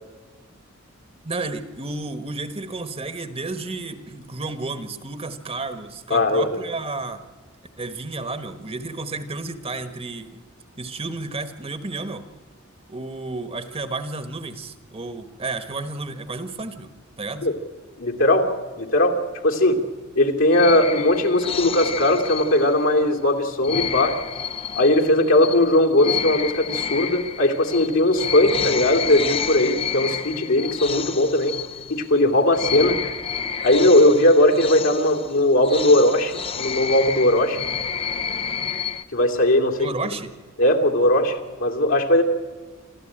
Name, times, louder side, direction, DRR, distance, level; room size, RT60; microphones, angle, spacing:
voice 1, 1.2-7.2 7.8-10.3 10.8-12.2 12.9-16.9 17.2-17.5 39.8-40.3, right 3 dB, 30° right, 10 dB, 1.3 m, -32 dB
voice 2, 6.1-6.6 17.4-17.5 18.0-19.8 20.1-24.2 24.8-31.6 31.9-33.0 33.6-37.6 39.1-39.9 40.6-42.2, left 1 dB, 65° left, 2 dB, 2.7 m, -19 dB
sound 1, 20.5-23.0 23.6-32.2 32.5-39.0, left 7 dB, 25° left, 0.7 m, -30 dB
26.5 x 14.0 x 8.8 m, 1.4 s
head